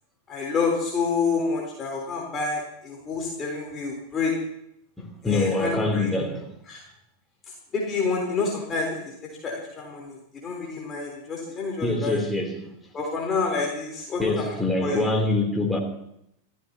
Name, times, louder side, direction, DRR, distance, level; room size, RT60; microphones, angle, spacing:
voice 1, 0.3-4.3 5.2-6.1 6.7-6.8 7.7-12.2 12.9-14.5 14.8-15.0, left 4 dB, 25° left, 3.8 m, -28 dB
voice 2, 5.0-6.5 11.8-12.7 14.2-15.8, left 2 dB, 5° left, 3.2 m, -25 dB
28.0 x 14.5 x 2.9 m
figure-of-eight pair, 90°, 0 cm